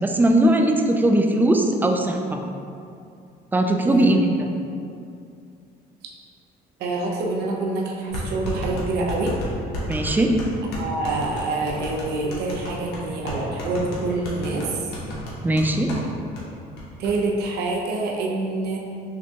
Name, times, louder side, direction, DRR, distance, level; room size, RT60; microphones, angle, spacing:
voice 1, 0.0-2.4 3.5-4.2 9.9-10.3 15.4-15.9, right 1 dB, 10° right, 3 dB, 0.3 m, -19 dB
voice 2, 3.8-4.2 6.8-9.4 10.7-14.9 17.0-18.8, right 3 dB, 75° right, -1 dB, 0.6 m, -26 dB
sound 1, 8.1-16.1 16.4-16.5 16.8-17.1, left 1 dB, 85° left, 1.0 m, -32 dB
5.8 x 2.2 x 2.8 m, 2.5 s
cardioid pair, 110°, 17 cm